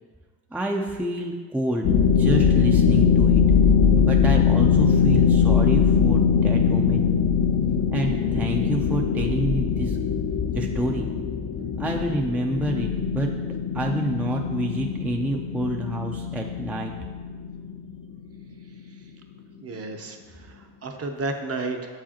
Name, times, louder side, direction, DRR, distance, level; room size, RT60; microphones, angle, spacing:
voice 1, 0.5-3.4 3.9-7.1 7.9-10.0 10.5-11.1 11.8-13.3 13.7-16.9, right 1 dB, 5° right, 1 dB, 0.4 m, -28 dB
sound 1, 1.8-18.4, left 6 dB, 60° left, 0.6 m, -21 dB
voice 2, 19.6-22.0, right 3 dB, 35° right, 4 dB, 0.7 m, -32 dB
6.9 x 4.9 x 2.9 m, 1.5 s
supercardioid pair, 65°, 41 cm